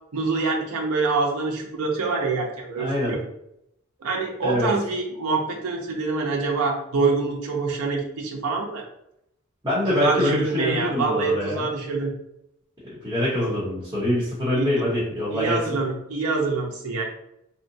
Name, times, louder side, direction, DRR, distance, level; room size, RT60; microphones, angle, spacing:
voice 1, 0.1-3.2 4.0-8.8 10.0-12.1 14.5-14.7 15.3-17.0, right 3 dB, 90° right, 1 dB, 0.5 m, -25 dB
voice 2, 2.8-3.1 4.4-4.7 9.6-11.6 12.8-15.6, left 1 dB, 20° right, -10 dB, 0.9 m, -24 dB
2.8 x 2.1 x 2.6 m, 0.78 s
head